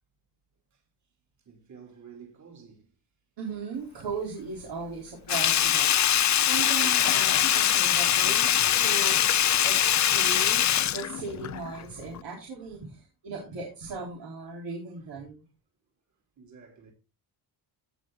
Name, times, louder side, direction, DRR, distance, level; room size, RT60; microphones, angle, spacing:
voice 1, 1.4-2.9 12.9-13.0 16.4-16.9, right 6 dB, 45° right, 3.0 m, -50 dB
voice 2, 3.4-5.9 6.4-9.2 9.6-15.4, right 4 dB, 85° right, 4.0 m, -37 dB
Sink (filling or washing), 5.3-11.8 12.1-12.2, left 11 dB, 45° left, 0.5 m, -23 dB
17.0 x 5.8 x 3.7 m
wide cardioid pair, 165°, 41 cm